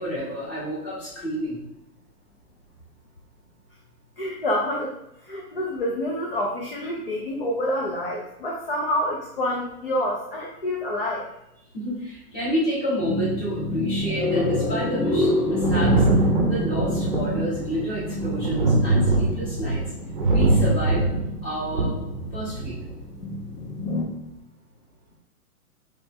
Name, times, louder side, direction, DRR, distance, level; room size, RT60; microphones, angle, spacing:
voice 1, 0.0-1.6 11.7-16.1 16.4-19.8 20.3-21.1 21.4-22.0 22.3-22.8, equal, 20° left, -10 dB, 1.6 m, -29 dB
voice 2, 4.2-4.9 5.3-11.3, left 1 dB, 40° left, -2 dB, 0.4 m, -27 dB
sound 1, 13.0-24.0, left 1 dB, 75° left, 1.2 m, -28 dB
Thunder, 15.6-23.0 24.1-24.2, right 2 dB, 30° right, 0.7 m, -23 dB
4.2 x 3.3 x 3.2 m, 0.83 s
hypercardioid pair, 175°, 47 cm